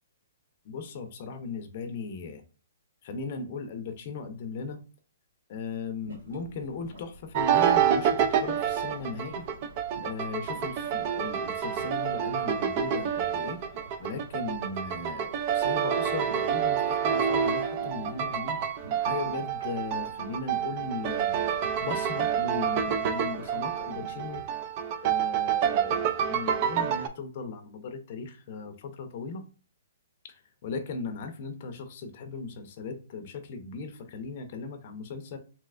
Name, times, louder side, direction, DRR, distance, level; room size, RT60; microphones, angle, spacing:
voice 1, 0.6-2.4 3.0-4.8 5.5-9.5 10.0-13.6 14.0-21.5 21.8-24.5 25.0-29.4 30.3-35.4, left 4 dB, 45° left, 0.5 m, -37 dB
sound 1, 6.0-24.5, equal, 80° right, 1.6 m, -51 dB
sound 2, 7.3-27.1, right 8 dB, 35° right, 0.3 m, -28 dB
3.2 x 2.8 x 2.4 m
hypercardioid pair, 155°, 0 cm